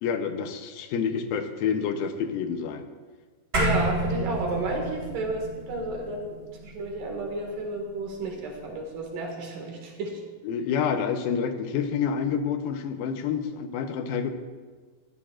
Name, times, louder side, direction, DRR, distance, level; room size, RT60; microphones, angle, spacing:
voice 1, 0.0-2.9 10.4-14.3, left 7 dB, 90° left, 7 dB, 2.7 m, -28 dB
sound 1, 3.5-8.2, right 1 dB, 25° right, 3.6 m, -30 dB
voice 2, 3.6-6.4 6.6-10.2, right 2 dB, 70° right, 0 dB, 3.5 m, -32 dB
15.5 x 14.0 x 2.5 m, 1.4 s
omnidirectional pair, 4.1 m